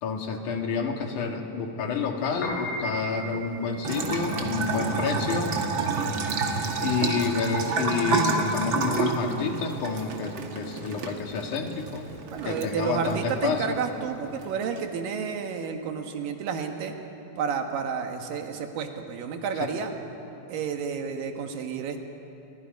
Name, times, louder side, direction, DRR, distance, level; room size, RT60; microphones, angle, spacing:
voice 1, 0.0-5.5 6.8-12.1 12.4-13.8 19.6-19.7, left 5 dB, 70° left, 3 dB, 3.3 m, -29 dB
Piano, 2.3-12.7, equal, 90° left, 5.1 m, -39 dB
Bathtub (filling or washing) / Trickle dribble, 3.8-14.8, right 4 dB, 45° right, 1.9 m, -30 dB
voice 2, 4.6-5.1 7.0-7.1 12.3-16.9 17.4-19.9 20.5-22.0, right 6 dB, 85° right, 5 dB, 3.2 m, -31 dB
29.5 x 23.5 x 5.3 m, 3.0 s
omnidirectional pair, 3.8 m